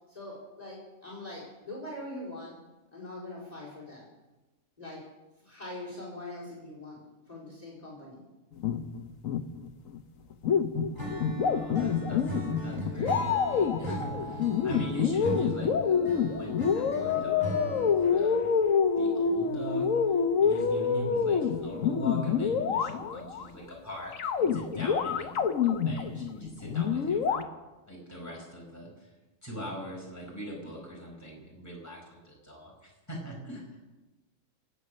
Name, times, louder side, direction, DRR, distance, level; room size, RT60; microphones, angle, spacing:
voice 1, 0.1-2.6 2.9-4.0 4.8-5.0 5.4-7.0 7.3-8.2, left 1 dB, 30° left, -4 dB, 4.4 m, -42 dB
sound 1, 8.6-10.0 10.3-23.5 24.1-27.4, left 6 dB, 85° left, 1.3 m, -27 dB
Acoustic guitar / Strum, 11.0-18.2, right 1 dB, 20° right, 3.2 m, -38 dB
voice 2, 11.5-12.3 12.6-18.5 19.0-19.9 20.4-27.5 27.9-28.9 29.4-33.6, equal, 10° left, -3 dB, 4.8 m, -41 dB
24.5 x 8.4 x 6.5 m, 1.1 s
omnidirectional pair, 1.3 m